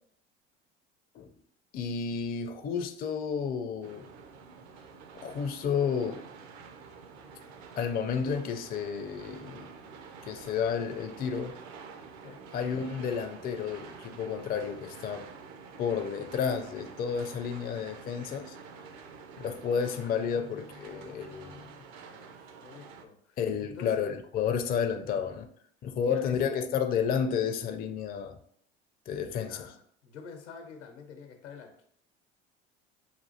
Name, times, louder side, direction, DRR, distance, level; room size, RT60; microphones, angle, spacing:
voice 1, 1.7-4.1 5.2-6.2 7.8-9.7 10.3-11.5 12.5-15.3 15.8-18.6 19.4-21.6 23.4-25.5 25.8-28.4 29.1-29.7, left 7 dB, 25° left, 0.4 m, -31 dB
sound 1, 3.8-23.1, right 5 dB, 50° right, 0.6 m, -48 dB
voice 2, 20.0-22.4 22.6-23.9 25.9-26.6 29.1-31.8, left 6 dB, 85° left, 0.8 m, -49 dB
6.0 x 2.4 x 2.7 m
hypercardioid pair, 70°, 34 cm